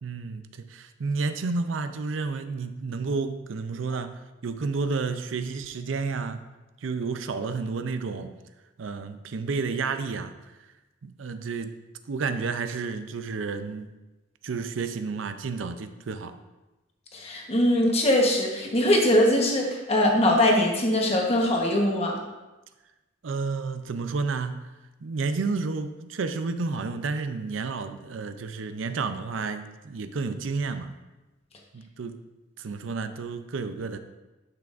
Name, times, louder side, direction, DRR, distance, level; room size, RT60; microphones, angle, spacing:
voice 1, 0.0-6.4 6.8-8.3 8.8-10.3 11.0-11.7 12.1-13.9 14.4-16.3 23.2-24.7 25.0-30.9 31.7-32.2 32.6-34.0, right 4 dB, 85° right, 9 dB, 0.5 m, -31 dB
voice 2, 17.1-22.2, left 1 dB, 30° left, 0 dB, 1.1 m, -22 dB
10.5 x 5.9 x 2.5 m, 1.1 s
head